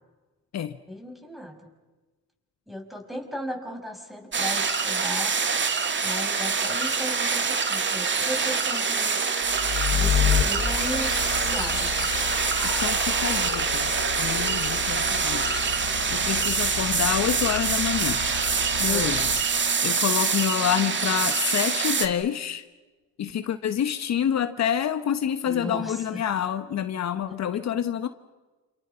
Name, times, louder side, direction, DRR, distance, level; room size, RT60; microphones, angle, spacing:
voice 1, 0.9-1.6 2.7-5.4 6.0-9.2 9.9-11.2 11.4-12.1 18.9-19.2 25.5-26.2, equal, ahead, 3 dB, 5.6 m, -36 dB
sound 1, 4.3-22.1, right 5 dB, 40° right, 2.3 m, -25 dB
sound 2, 9.4-19.4, left 9 dB, 90° left, 2.5 m, -31 dB
voice 2, 12.8-13.9 14.1-15.6 16.1-18.2 18.8-19.3 19.8-22.6 23.2-28.1, left 9 dB, 60° left, 10 dB, 1.2 m, -27 dB
29.0 x 28.5 x 5.8 m, 1.2 s
cardioid pair, 90°, 30 cm